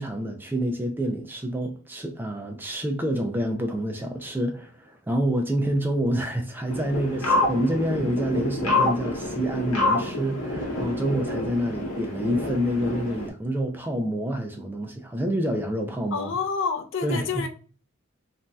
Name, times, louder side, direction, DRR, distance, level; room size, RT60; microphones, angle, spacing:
voice 1, 0.0-16.3 17.0-17.5, equal, 10° right, 0.3 m, -27 dB
sound 1, 6.7-13.3, left 2 dB, 85° left, 0.8 m, -27 dB
voice 2, 16.1-17.5, left 5 dB, 60° left, 0.4 m, -28 dB
3.0 x 2.6 x 2.2 m
head